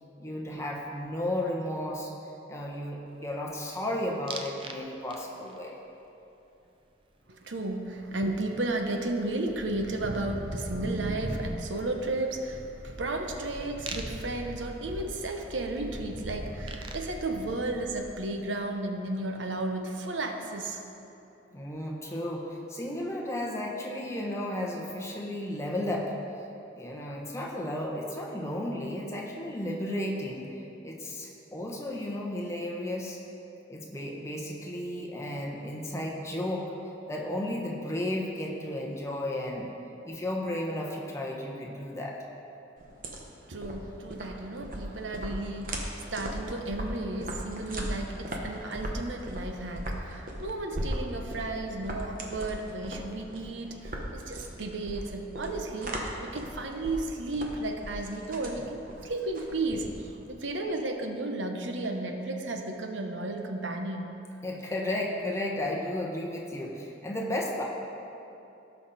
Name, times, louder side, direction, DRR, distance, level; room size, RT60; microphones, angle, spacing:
voice 1, 0.2-2.1 2.5-5.8 21.5-26.1 26.8-30.5 30.8-33.2 33.7-36.7 37.1-39.7 40.0-42.2 43.6-44.0 64.4-67.6, left 1 dB, 15° left, -2 dB, 1.1 m, -33 dB
sound 1, 4.3-4.8 5.1-5.6 8.0-8.1 8.3-18.4, right 1 dB, 30° right, 0.6 m, -40 dB
voice 2, 7.3-20.8 43.5-64.1, right 2 dB, 85° right, 4 dB, 0.9 m, -33 dB
sound 2, 42.8-60.2, right 1 dB, 45° right, 1.2 m, -38 dB
17.5 x 5.8 x 4.2 m, 2.8 s
head